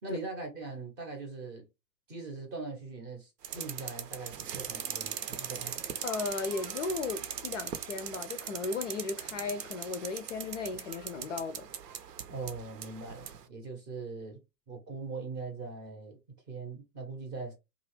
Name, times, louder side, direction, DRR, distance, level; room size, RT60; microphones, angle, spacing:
voice 1, 0.0-1.7 2.1-5.7 12.3-14.4 14.7-16.2 16.5-17.5, right 3 dB, 25° right, 0.6 m, -41 dB
sound 1, 3.4-13.4, right 8 dB, 70° right, 0.6 m, -40 dB
voice 2, 6.0-11.7, left 4 dB, 50° left, 0.4 m, -36 dB
2.8 x 2.4 x 3.0 m
figure-of-eight pair, 105°, 50 cm